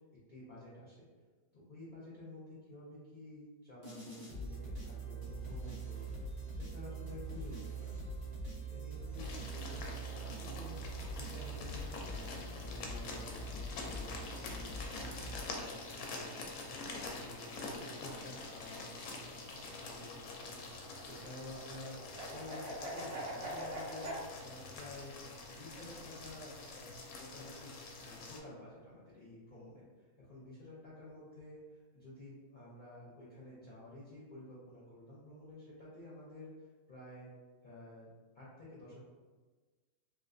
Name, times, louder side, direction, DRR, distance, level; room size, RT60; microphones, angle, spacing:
voice 1, 0.3-1.1 1.5-8.3 8.6-10.8 11.1-14.7 15.0-22.0 22.3-24.1 24.4-25.2 25.5-27.7 28.0-36.5 36.9-37.3 37.6-38.1 38.3-39.0, left 1 dB, 50° left, -7 dB, 0.6 m, -51 dB
sound 1, 3.8-15.9, right 2 dB, 30° right, 0.9 m, -43 dB
sound 2, 9.2-28.4, left 3 dB, 70° left, 0.9 m, -46 dB
sound 3, 19.5-24.2, right 1 dB, 60° right, 0.9 m, -44 dB
2.9 x 2.7 x 2.5 m, 1.3 s
omnidirectional pair, 1.7 m